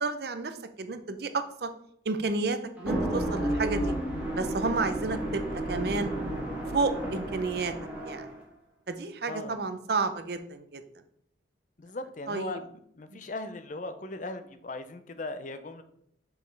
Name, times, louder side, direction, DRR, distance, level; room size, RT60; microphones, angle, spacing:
voice 1, 0.0-1.7 2.1-3.9 4.4-6.1 6.7-7.7 8.0-8.4 8.9-10.8 12.3-12.6 13.1-13.2, right 3 dB, 60° right, 10 dB, 0.6 m, -31 dB
sound 1, 2.8-8.4, right 1 dB, 5° right, 1.8 m, -32 dB
voice 2, 9.3-9.6 11.8-15.8, left 2 dB, 45° left, 10 dB, 0.5 m, -38 dB
6.2 x 5.3 x 3.3 m, 0.69 s
head